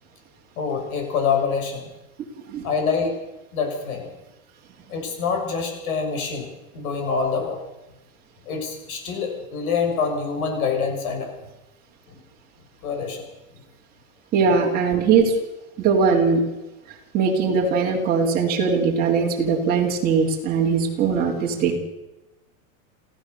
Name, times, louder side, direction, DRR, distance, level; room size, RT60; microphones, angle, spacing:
voice 1, 0.6-1.9 2.6-3.1 3.5-4.2 4.9-6.5 6.7-7.6 8.5-11.3 12.1-12.2 12.8-13.2 13.5-13.6 14.4-14.6, left 5 dB, 80° left, 3 dB, 7.0 m, -26 dB
voice 2, 14.3-15.3 15.8-16.4 17.1-21.8, right 5 dB, 20° right, -2 dB, 3.3 m, -20 dB
28.0 x 15.5 x 6.9 m, 1.0 s
supercardioid pair, 175°, 42 cm